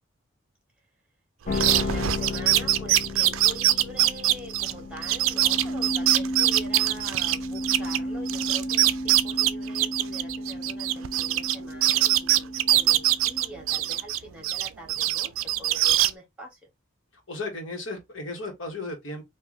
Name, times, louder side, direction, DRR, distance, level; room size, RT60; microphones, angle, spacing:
voice 1, 1.4-16.6, equal, 5° right, 1.6 m, -44 dB
sound 1, 1.5-13.8, left 1 dB, 35° left, 0.6 m, -33 dB
sound 2, 1.5-8.0 8.3-11.6 11.8-14.2 14.4-16.1, right 14 dB, 80° right, 0.4 m, -23 dB
voice 2, 17.3-19.2, left 2 dB, 70° left, 1.5 m, -35 dB
3.1 x 2.6 x 3.8 m
head